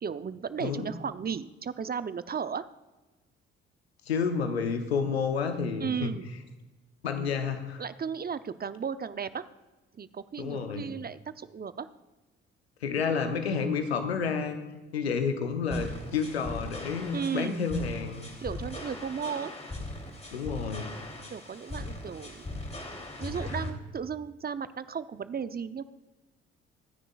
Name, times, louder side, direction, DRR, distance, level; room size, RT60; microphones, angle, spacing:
voice 1, 0.0-2.6 5.8-6.3 7.2-7.3 7.8-9.5 9.9-11.9 17.1-17.6 18.4-19.5 21.3-22.6 23.2-25.8, right 6 dB, 30° right, 13 dB, 0.7 m, -35 dB
voice 2, 4.1-6.1 7.0-7.8 10.4-10.9 12.8-14.6 14.9-18.3 20.3-20.9, left 5 dB, 90° left, 8 dB, 0.9 m, -30 dB
sound 1, 15.7-23.7, left 2 dB, 20° left, 3.2 m, -39 dB
24.5 x 9.9 x 2.4 m, 1.1 s
hypercardioid pair, 45°, 31 cm